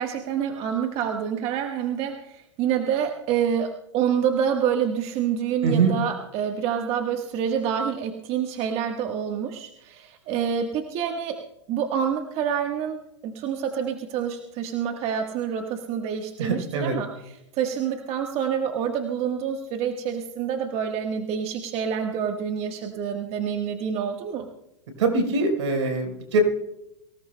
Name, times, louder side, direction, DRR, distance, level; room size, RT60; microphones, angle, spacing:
voice 1, 0.0-11.4 11.7-13.0 13.2-24.5, right 8 dB, 40° right, 4 dB, 1.4 m, -27 dB
voice 2, 5.6-6.0 16.4-16.9 25.0-26.4, right 3 dB, 70° right, 4 dB, 4.1 m, -23 dB
24.0 x 17.0 x 2.2 m, 0.86 s
hypercardioid pair, 110°, 15 cm